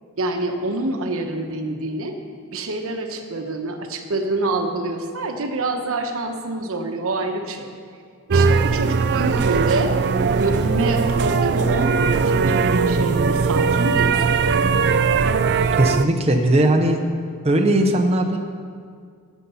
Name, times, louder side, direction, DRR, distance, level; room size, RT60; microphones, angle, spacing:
voice 1, 0.2-2.2 2.5-7.7 8.3-9.9 10.4-14.7, right 2 dB, 70° right, 5 dB, 1.1 m, -26 dB
sound 1, 8.3-16.1, right 5 dB, 50° right, 0.4 m, -19 dB
voice 2, 15.8-17.0 17.4-18.4, right 1 dB, 30° right, 3 dB, 0.8 m, -18 dB
14.0 x 8.2 x 5.6 m, 2.1 s
head